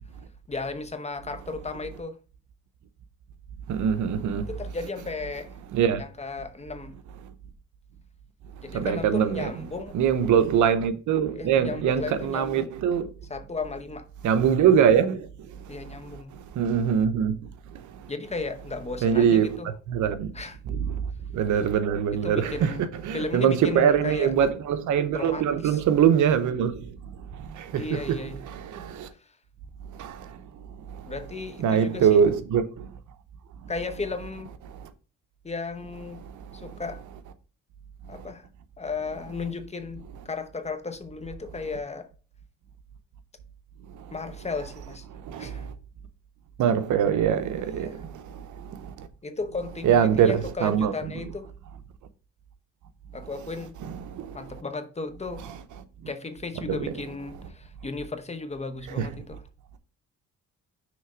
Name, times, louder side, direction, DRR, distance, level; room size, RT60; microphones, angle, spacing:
voice 1, 0.5-2.2 4.5-5.6 6.0-6.9 8.6-10.0 11.3-12.7 13.3-14.1 15.7-16.4 18.1-19.7 20.3-20.6 22.2-22.9 23.1-24.3 25.1-25.8 27.7-28.4 29.2-29.3 31.1-32.2 33.7-34.5 35.4-36.2 36.5-37.0 38.1-38.5 38.8-42.1 44.1-45.1 45.4-45.7 47.6-48.0 49.2-51.5 53.1-53.8 54.3-55.4 56.1-59.4, left 4 dB, 20° left, 0.8 m, -35 dB
voice 2, 3.7-4.5 5.7-6.0 8.7-9.5 9.9-13.1 14.2-15.7 16.3-17.4 17.7-18.1 19.0-19.6 19.9-20.3 20.7-21.1 21.3-27.0 27.3-29.1 29.9-30.4 30.9-31.1 31.6-32.9 34.7-34.9 36.2-36.7 38.1-38.3 43.9-44.1 45.1-45.7 46.6-49.1 49.8-50.9 53.8-54.4 56.7-56.8 59.0-59.1, right 8 dB, 75° right, 0.9 m, -24 dB
6.3 x 3.3 x 5.0 m
cardioid pair, 90°, 30 cm